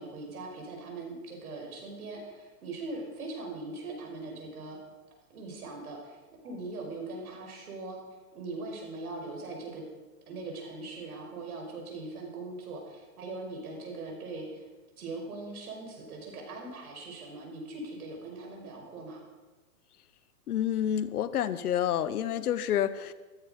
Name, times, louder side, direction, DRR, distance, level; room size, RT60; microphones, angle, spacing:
voice 1, 0.0-4.8 5.3-6.2 6.4-8.0 8.3-9.8 10.3-14.6 15.0-19.2, right 2 dB, 80° right, 1 dB, 5.6 m, -40 dB
voice 2, 20.5-23.1, left 10 dB, 85° left, 14 dB, 1.1 m, -29 dB
15.0 x 13.5 x 5.3 m, 1.2 s
hypercardioid pair, 160°, 44 cm